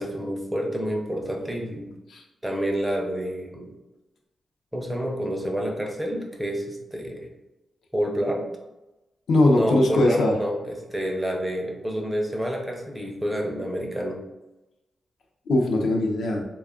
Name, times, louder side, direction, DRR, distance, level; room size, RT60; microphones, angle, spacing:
voice 1, 0.0-1.9 2.4-3.7 4.7-7.3 7.9-8.4 9.5-14.2, equal, 5° right, 1 dB, 0.5 m, -28 dB
voice 2, 9.3-10.3 15.5-16.4, left 2 dB, 85° left, 1 dB, 0.6 m, -20 dB
3.4 x 2.3 x 3.6 m, 1.0 s
wide cardioid pair, 160°, 0 cm